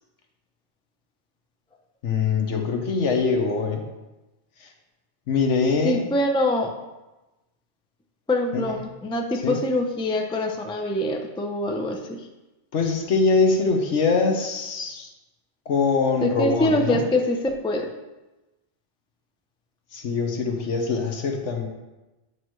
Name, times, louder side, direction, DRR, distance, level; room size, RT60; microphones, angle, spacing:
voice 1, 2.0-3.8 4.6-4.7 5.3-6.0 8.5-8.8 9.4-9.6 12.7-15.1 15.7-17.0 19.9-21.7, left 4 dB, 75° left, 3 dB, 1.3 m, -23 dB
voice 2, 5.8-6.7 8.3-12.3 16.2-17.9, left 1 dB, 5° left, 3 dB, 0.4 m, -24 dB
9.4 x 6.0 x 3.1 m, 1.1 s
omnidirectional pair, 1.2 m